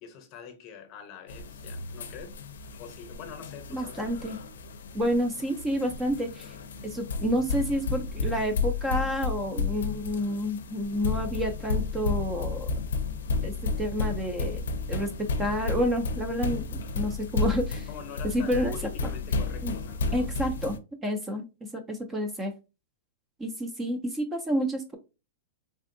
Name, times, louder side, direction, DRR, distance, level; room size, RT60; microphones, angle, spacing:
voice 1, 0.0-2.4 2.8-4.1 17.9-20.3, left 7 dB, 35° left, 0.7 m, -45 dB
sound 1, 1.3-20.8, left 4 dB, 85° left, 0.4 m, -32 dB
voice 2, 3.7-4.4 4.9-6.5 6.8-12.7 13.4-17.9 18.2-18.9 19.6-19.7 20.1-20.8 21.0-22.5 23.4-25.0, equal, 15° right, 0.4 m, -29 dB
3.5 x 2.4 x 2.6 m
hypercardioid pair, 145°, 0 cm